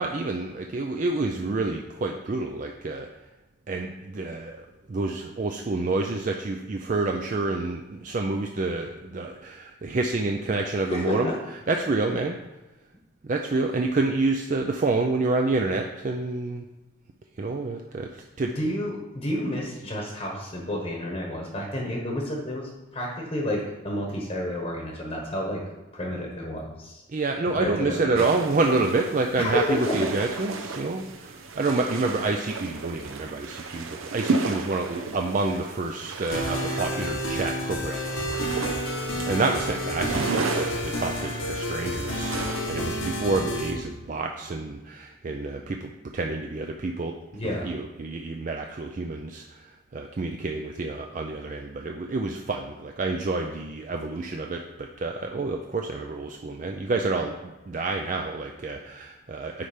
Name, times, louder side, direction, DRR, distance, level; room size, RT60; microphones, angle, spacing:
voice 1, 0.0-3.1 3.7-11.3 11.7-12.4 13.2-16.7 17.4-18.5 27.1-38.6 39.2-47.2 47.4-59.7, right 3 dB, 40° right, 3 dB, 0.4 m, -28 dB
voice 2, 10.9-11.3 18.5-25.6 25.9-27.0 27.6-28.1 29.4-30.0 47.3-47.7, left 1 dB, 30° left, -1 dB, 1.1 m, -30 dB
sound 1, 28.2-43.0, right 3 dB, 85° right, 0.7 m, -34 dB
sound 2, 36.3-43.7, equal, 85° left, 1.4 m, -30 dB
9.6 x 3.3 x 5.0 m, 1.1 s
head